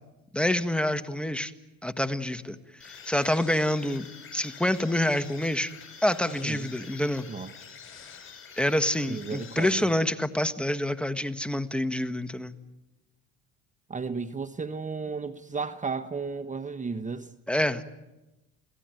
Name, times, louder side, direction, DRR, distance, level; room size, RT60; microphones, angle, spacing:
voice 1, 0.3-1.5 1.8-2.6 2.8-4.1 4.3-5.7 6.0-7.3 8.6-12.6 17.5-17.8, left 1 dB, 5° left, 1.5 m, -27 dB
sound 1, 2.8-10.3, left 7 dB, 40° left, 7.9 m, -47 dB
voice 2, 6.3-6.7 7.3-7.5 9.1-9.9 13.9-17.3, right 4 dB, 25° right, 1.0 m, -34 dB
29.5 x 17.5 x 9.3 m
supercardioid pair, 80°, 31 cm